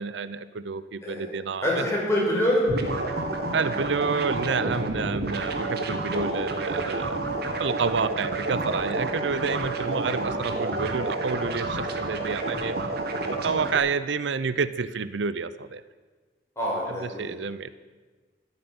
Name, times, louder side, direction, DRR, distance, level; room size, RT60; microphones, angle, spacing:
voice 1, 0.0-1.8 3.5-7.2 7.6-12.8 13.3-15.8 17.0-17.8, right 5 dB, 75° right, 15 dB, 0.6 m, -29 dB
voice 2, 1.6-2.6 6.1-6.2 16.6-17.3, left 1 dB, 15° left, -5 dB, 6.0 m, -25 dB
sound 1, 2.7-13.8, right 2 dB, 60° right, 1.6 m, -29 dB
13.5 x 8.3 x 9.6 m, 1.4 s
head